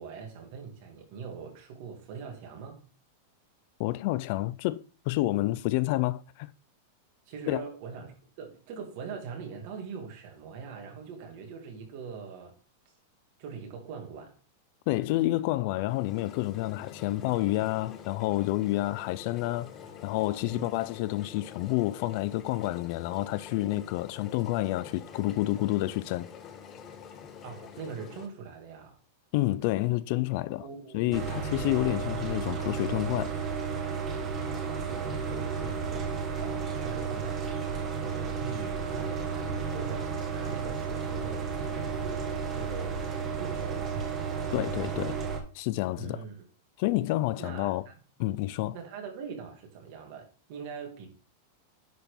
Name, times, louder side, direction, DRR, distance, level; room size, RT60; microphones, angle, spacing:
voice 1, 0.0-2.9 7.3-12.6 12.9-13.0 13.4-14.4 18.8-18.9 20.3-20.7 27.4-29.0 30.6-31.4 34.4-37.5 38.0-43.0 43.4-44.0 45.9-46.4 47.4-48.0 48.7-51.1, right 6 dB, 45° right, 2.3 m, -42 dB
voice 2, 3.8-6.5 7.5-7.6 14.9-19.7 20.0-26.3 29.3-30.6 30.9-33.3 44.5-45.2 45.5-46.2 46.8-47.9 48.2-48.8, left 17 dB, 45° left, 0.3 m, -29 dB
sound 1, 15.8-28.3, left 7 dB, 25° left, 0.7 m, -46 dB
sound 2, 31.1-45.4, right 6 dB, 20° right, 1.3 m, -33 dB
10.0 x 4.3 x 3.4 m
supercardioid pair, 165°, 0 cm